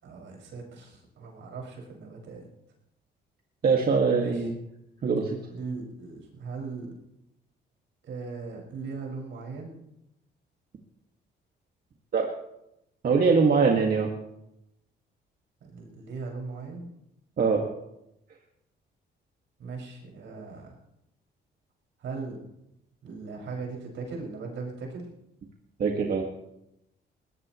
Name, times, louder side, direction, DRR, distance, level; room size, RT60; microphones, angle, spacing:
voice 1, 0.0-2.4 4.2-4.5 5.5-6.9 8.0-9.7 15.6-16.9 19.6-20.7 22.0-22.4 23.0-25.1, right 4 dB, 75° right, -1 dB, 6.2 m, -38 dB
voice 2, 3.6-4.6 5.0-5.4 12.1-12.3 13.0-14.1 17.4-17.6 25.8-26.2, right 5 dB, 50° right, 1 dB, 2.1 m, -22 dB
21.0 x 18.0 x 3.2 m, 0.85 s
cardioid pair, 90°, 20 cm